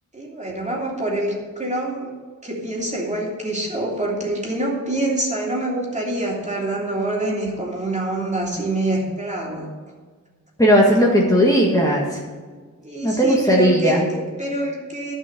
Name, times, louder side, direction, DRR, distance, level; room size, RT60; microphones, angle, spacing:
voice 1, 0.1-2.1 2.4-9.7 12.8-15.1, right 2 dB, 25° right, -3 dB, 3.1 m, -26 dB
voice 2, 10.6-12.0 13.0-14.0, equal, 10° left, -3 dB, 1.8 m, -16 dB
12.0 x 5.6 x 8.5 m, 1.5 s
wide cardioid pair, 75°, 31 cm